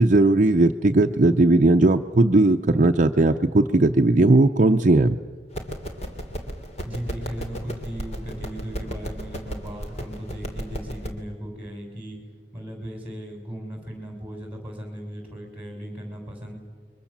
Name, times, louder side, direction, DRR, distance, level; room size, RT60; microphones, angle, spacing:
voice 1, 0.0-5.2, right 2 dB, 45° right, 5 dB, 0.7 m, -18 dB
sound 1, 5.5-11.1, equal, 40° left, 2.9 m, -34 dB
voice 2, 6.8-12.2 12.5-16.5, equal, 10° right, 2 dB, 6.7 m, -36 dB
29.0 x 23.5 x 7.4 m, 1.5 s
head